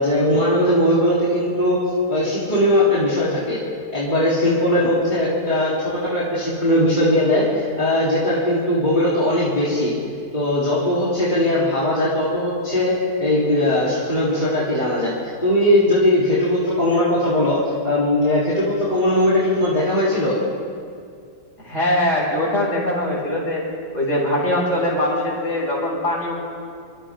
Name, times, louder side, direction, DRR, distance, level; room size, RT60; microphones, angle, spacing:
voice 1, 0.0-1.8 2.1-3.6 3.9-9.9 10.3-15.1 15.4-20.4, left 1 dB, 25° left, -9 dB, 4.0 m, -19 dB
voice 2, 21.6-23.6 23.9-26.3, left 1 dB, 45° left, -5 dB, 7.1 m, -22 dB
27.5 x 25.5 x 3.8 m, 2.3 s
omnidirectional pair, 1.7 m